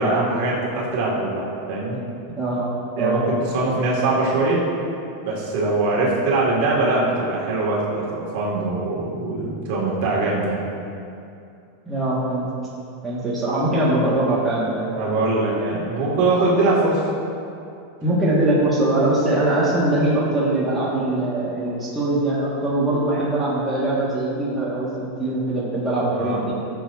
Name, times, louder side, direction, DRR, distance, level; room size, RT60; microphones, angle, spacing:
voice 1, 0.0-2.0 3.0-3.2 3.5-4.6 5.2-10.6 14.9-17.0 26.1-26.4, right 2 dB, 60° right, -5 dB, 2.3 m, -22 dB
voice 2, 2.4-2.7 3.0-3.3 11.9-12.5 13.0-14.9 18.0-26.5, right 1 dB, 10° right, -8 dB, 1.9 m, -22 dB
13.5 x 7.3 x 2.8 m, 2.6 s
supercardioid pair, 145°, 0 cm